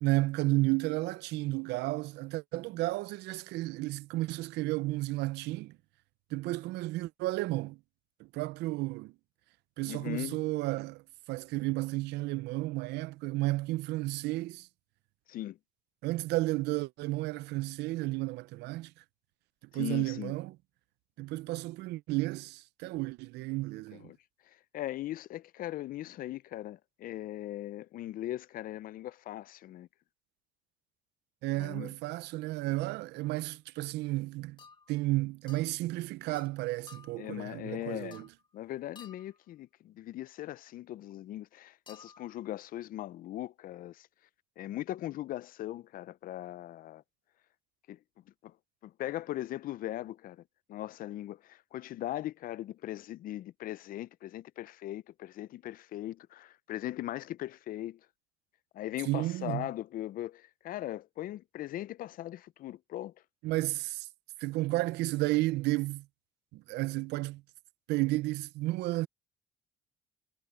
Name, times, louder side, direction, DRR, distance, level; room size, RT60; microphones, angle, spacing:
voice 1, 0.0-5.8 6.3-7.8 8.2-9.1 9.8-11.0 11.3-14.7 16.0-18.9 19.7-20.6 21.2-24.1 31.4-34.6 34.9-38.3 59.1-59.7 63.4-64.1 64.4-66.1 66.5-67.4 67.9-69.1, right 20 dB, 85° right, 0.5 m, -32 dB
voice 2, 9.9-10.4 15.3-15.6 19.7-20.3 23.9-24.2 24.5-29.9 31.5-31.9 37.2-38.2 38.5-44.1 44.6-47.0 47.9-48.0 48.4-48.5 48.8-50.4 50.7-58.0 58.7-63.1, left 14 dB, 55° left, 0.4 m, -39 dB
sound 1, 33.2-33.4 34.6-35.0 35.5-35.7 36.3-36.6 36.9-37.3 38.1-38.5 39.0-39.4 41.9-42.3, left 5 dB, 30° left, 1.9 m, -54 dB
cardioid pair, 110°, 17 cm